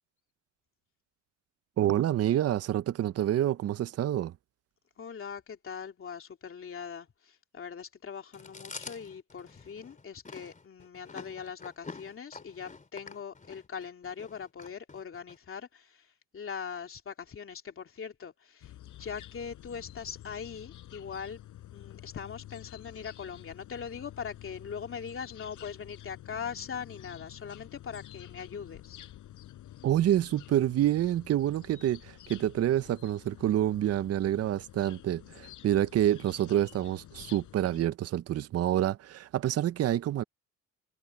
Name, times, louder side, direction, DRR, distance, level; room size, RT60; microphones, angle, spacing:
voice 1, 1.8-4.3 29.8-40.2, right 12 dB, 55° right, 0.6 m, -27 dB
voice 2, 5.0-21.4 21.7-29.0, left 7 dB, 45° left, 2.8 m, -41 dB
Chewing mastication, 8.3-15.4, left 4 dB, 25° left, 3.2 m, -47 dB
sound 1, 18.6-37.9, left 13 dB, 80° left, 5.7 m, -49 dB
cardioid pair, 90°, 30 cm